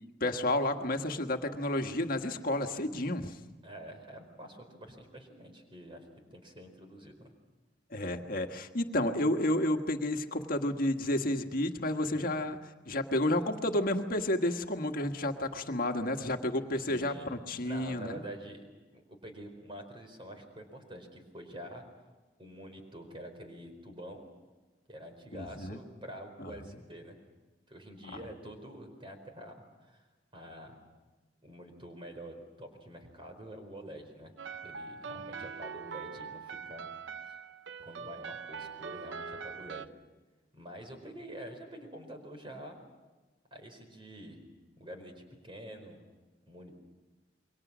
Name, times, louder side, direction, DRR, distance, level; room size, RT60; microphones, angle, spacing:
voice 1, 0.2-3.4 7.9-12.6 12.9-18.2 25.3-25.8 26.4-26.5 35.2-35.3, left 1 dB, 55° left, 5 dB, 1.6 m, -31 dB
voice 2, 3.6-7.3 12.1-12.4 16.8-17.4 17.6-18.6 18.9-21.8 22.4-24.3 24.9-27.2 27.7-30.1 30.3-30.7 31.4-34.3 34.6-36.9 37.2-37.4 37.8-39.8 40.5-42.8 43.5-44.4 44.8-46.0 46.5-46.8, right 1 dB, 30° right, 5 dB, 4.6 m, -47 dB
sound 1, 34.4-39.9, right 5 dB, 85° right, 0.7 m, -42 dB
28.5 x 23.0 x 6.2 m, 1.2 s
head